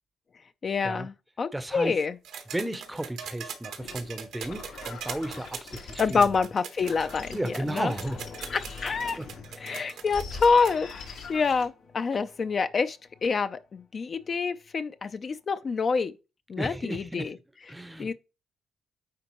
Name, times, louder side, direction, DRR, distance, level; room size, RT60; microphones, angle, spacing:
voice 1, 0.6-2.1 6.0-7.9 8.5-9.2 9.6-16.1 16.5-17.3 18.0-18.1, left 5 dB, 45° left, 0.5 m, -27 dB
voice 2, 1.5-2.0 2.5-6.3 7.3-8.2 9.2-9.3 9.5-10.0 16.6-17.3 17.7-18.1, right 1 dB, 10° right, 0.7 m, -34 dB
sound 1, 2.2-10.9 12.1-12.2, right 7 dB, 80° right, 1.3 m, -41 dB
sound 2, 3.8-9.5 10.0-11.7, left 4 dB, 80° left, 1.8 m, -43 dB
sound 3, 6.7-15.4, left 5 dB, 65° left, 2.3 m, -50 dB
9.6 x 3.7 x 3.0 m
cardioid pair, 90°, 0 cm